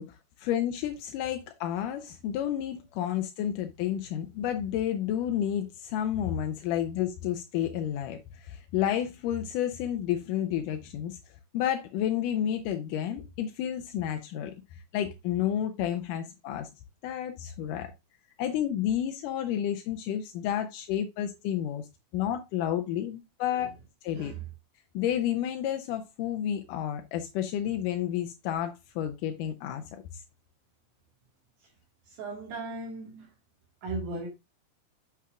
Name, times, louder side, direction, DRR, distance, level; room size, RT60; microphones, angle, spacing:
voice 1, 0.0-11.2 11.5-16.7 17.0-17.9 18.4-21.9 22.1-23.7 24.0-24.3 24.9-30.2, left 10 dB, 85° left, 2.3 m, -31 dB
voice 2, 24.1-24.5 31.6-31.7 32.1-33.3 33.8-34.3, right 3 dB, 70° right, 3.3 m, -37 dB
8.4 x 7.2 x 2.4 m
omnidirectional pair, 3.7 m